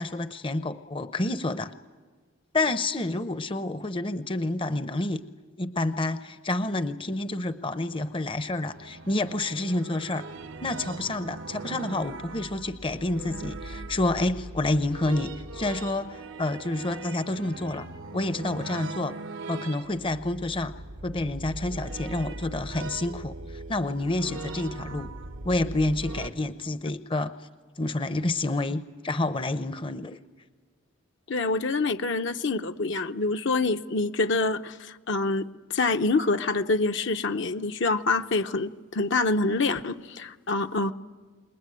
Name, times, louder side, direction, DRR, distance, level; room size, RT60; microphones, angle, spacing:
voice 1, 0.0-1.7 2.5-5.2 5.6-10.3 10.6-17.9 18.1-19.2 19.5-20.7 21.0-25.1 25.4-27.3 27.8-30.2, left 2 dB, 25° left, 12 dB, 0.7 m, -29 dB
sound 1, 8.1-26.3, right 2 dB, 85° right, 1.2 m, -40 dB
voice 2, 31.3-40.9, left 3 dB, 65° left, 7 dB, 0.8 m, -26 dB
27.5 x 21.0 x 9.2 m, 1.5 s
head